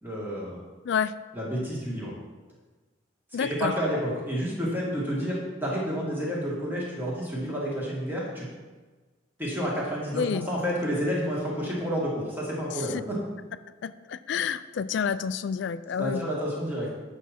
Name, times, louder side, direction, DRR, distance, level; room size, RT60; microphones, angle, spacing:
voice 1, 0.0-0.6 1.3-2.1 3.4-8.5 9.4-13.2 16.0-16.9, equal, 10° right, -5 dB, 1.8 m, -30 dB
voice 2, 3.3-3.7 10.1-10.5 12.7-13.0 13.8-16.3, left 6 dB, 60° left, 14 dB, 0.3 m, -29 dB
8.3 x 5.8 x 4.2 m, 1.3 s
head